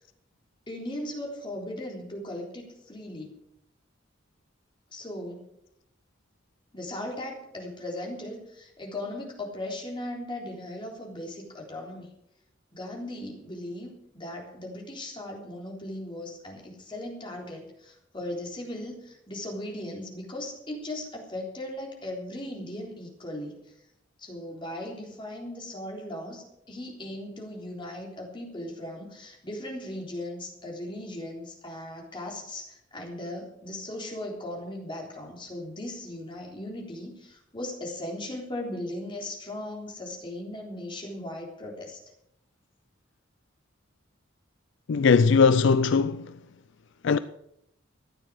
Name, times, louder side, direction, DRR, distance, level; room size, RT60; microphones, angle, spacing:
voice 1, 0.7-3.4 4.9-5.4 6.7-12.1 12.7-23.5 24.2-42.0, left 1 dB, 25° left, 3.7 m, -38 dB
voice 2, 44.9-46.3 47.0-47.2, left 5 dB, 65° left, 0.4 m, -20 dB
14.0 x 10.0 x 6.3 m
head